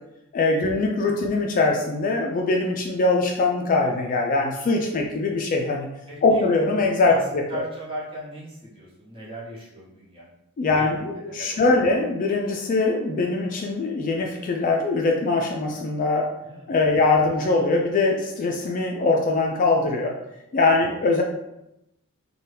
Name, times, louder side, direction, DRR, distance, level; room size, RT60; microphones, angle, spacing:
voice 1, 0.3-5.9 6.2-7.6 10.6-16.3 16.7-20.1 20.5-21.2, left 3 dB, 35° left, 1 dB, 0.3 m, -22 dB
voice 2, 6.1-6.5 7.0-10.3 10.7-11.6 16.4-16.7 20.7-20.9, right 1 dB, 25° right, -7 dB, 0.9 m, -38 dB
2.8 x 2.2 x 3.3 m, 0.88 s
head